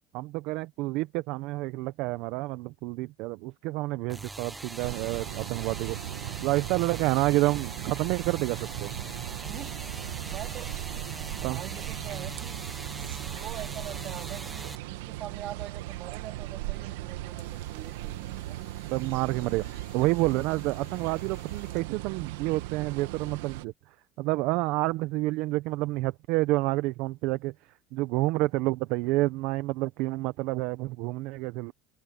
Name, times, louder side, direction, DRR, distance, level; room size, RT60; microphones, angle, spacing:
voice 1, 0.1-6.0 6.4-8.9 11.4-11.6 18.9-23.7 24.2-27.5 27.9-31.7, right 20 dB, 75° right, 0.9 m, -29 dB
sound 1, 4.1-14.8, right 2 dB, 10° right, 0.8 m, -41 dB
sound 2, 4.8-23.7, right 16 dB, 90° right, 1.4 m, -38 dB
voice 2, 9.5-9.8 10.3-10.8 11.5-12.6 13.0-18.6, right 12 dB, 55° right, 3.4 m, -43 dB
sound 3, 16.7-22.1, left 30 dB, 80° left, 6.5 m, -57 dB
supercardioid pair, 105°, 0 cm